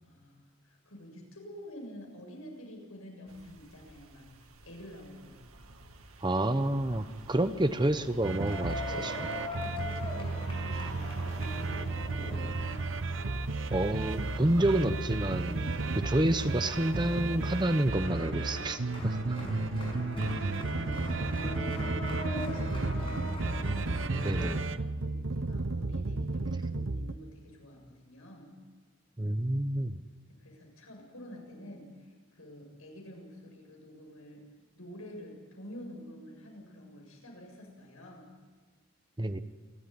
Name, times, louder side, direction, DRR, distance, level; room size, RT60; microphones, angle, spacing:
voice 1, 0.0-4.3 4.6-5.4 9.6-12.4 19.3-23.3 24.1-24.3 24.9-28.5 30.3-34.4 34.8-38.3, equal, 85° left, 1 dB, 7.3 m, -49 dB
sound 1, 3.3-17.9, right 1 dB, 85° right, 2.2 m, -48 dB
voice 2, 6.2-9.3 13.7-19.4 24.2-24.7 29.2-30.0 39.2-39.4, right 1 dB, 20° right, 10 dB, 0.9 m, -29 dB
sound 2, 8.2-27.1, right 3 dB, 60° right, 0.9 m, -33 dB
sound 3, 8.4-24.6, left 1 dB, 25° left, 6.1 m, -41 dB
28.0 x 13.5 x 10.0 m, 1.4 s
head